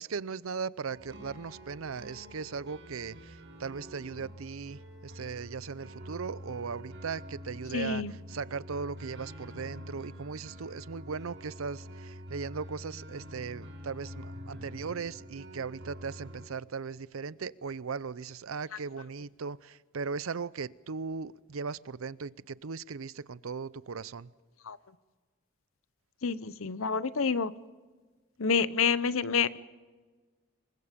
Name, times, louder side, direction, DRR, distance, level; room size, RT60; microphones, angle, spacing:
voice 1, 0.0-24.3, right 5 dB, 85° right, 0.6 m, -38 dB
sound 1, 0.9-16.5, equal, 60° right, 7.1 m, -46 dB
voice 2, 7.7-8.1 24.7-24.8 26.2-27.5 28.4-29.6, left 6 dB, 80° left, 0.8 m, -28 dB
27.5 x 23.0 x 5.2 m
head